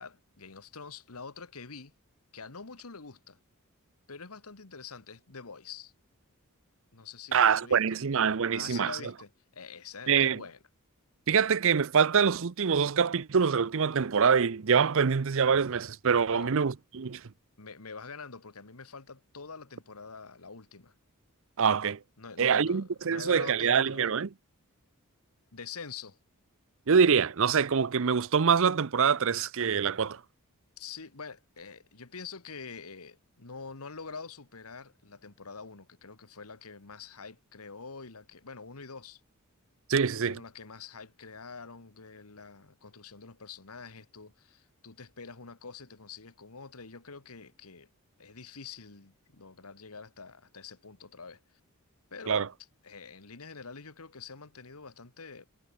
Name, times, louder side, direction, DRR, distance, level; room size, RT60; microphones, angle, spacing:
voice 1, 0.0-1.9 2.3-3.4 4.1-5.9 6.9-8.0 8.5-10.6 16.3-16.5 17.6-20.9 22.2-24.2 25.5-26.2 30.8-39.2 40.1-47.9 48.2-51.4 52.1-52.5 52.8-55.5, left 5 dB, 80° left, 1.6 m, -46 dB
voice 2, 7.3-9.0 10.1-10.4 11.3-17.2 21.6-22.0 22.4-24.3 26.9-30.2 39.9-40.4 52.3-52.5, right 6 dB, 65° right, 0.6 m, -25 dB
head